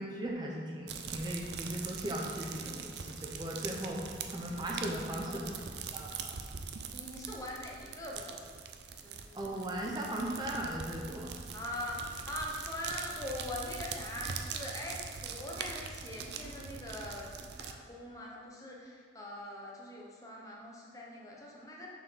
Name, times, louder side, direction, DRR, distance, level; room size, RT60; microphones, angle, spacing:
voice 1, 0.0-5.6 5.9-6.3 9.3-11.3, right 1 dB, 25° right, -2 dB, 0.7 m, -38 dB
sound 1, 0.9-17.7, right 6 dB, 65° right, 0.5 m, -43 dB
voice 2, 5.1-5.6 6.9-8.5 9.0-9.4 11.5-21.9, left 1 dB, 20° left, -3 dB, 1.0 m, -42 dB
6.7 x 4.5 x 5.7 m, 2.1 s
head